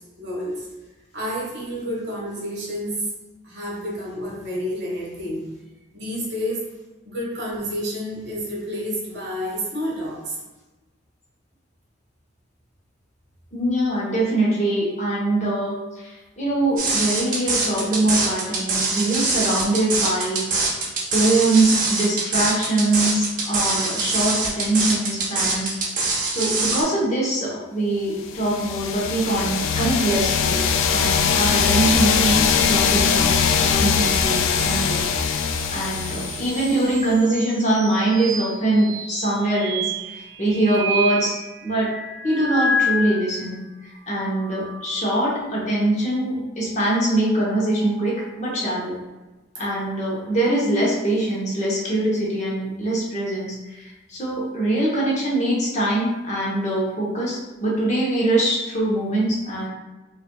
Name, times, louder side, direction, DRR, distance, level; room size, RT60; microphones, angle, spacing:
voice 1, 0.2-0.7 1.1-3.0 3.4-5.4 5.9-6.6 7.0-10.3, equal, 60° right, -4 dB, 1.2 m, -29 dB
voice 2, 13.5-20.4 21.1-30.6 30.9-35.3 35.7-41.9 42.2-43.6 44.1-48.9 49.6-59.7, right 1 dB, 35° left, -5 dB, 0.8 m, -23 dB
sound 1, 16.8-26.8, right 3 dB, 40° right, 0.7 m, -23 dB
sound 2, 28.3-37.0, left 6 dB, 90° left, 0.3 m, -21 dB
sound 3, 34.0-43.5 44.0-45.3 47.1-48.3, equal, 85° right, 0.8 m, -31 dB
5.1 x 2.5 x 2.2 m, 1.1 s
head